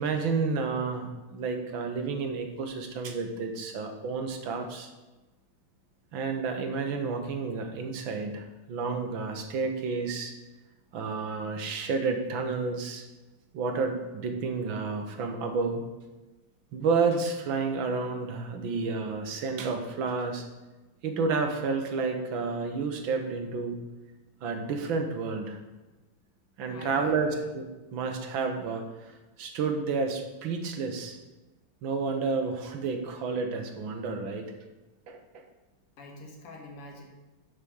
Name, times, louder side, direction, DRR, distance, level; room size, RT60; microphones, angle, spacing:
voice 1, 0.0-4.9 6.1-10.3 10.9-13.0 13.5-15.8 16.7-20.5 21.0-23.8 24.4-25.6 26.6-27.7 27.9-29.1 29.4-31.2 31.8-34.5 35.1-35.2, right 4 dB, 65° right, 5 dB, 1.8 m, -30 dB
voice 2, 26.6-27.5 36.0-37.0, left 2 dB, 85° left, 1 dB, 2.4 m, -45 dB
7.1 x 6.2 x 7.0 m, 1.1 s
omnidirectional pair, 2.4 m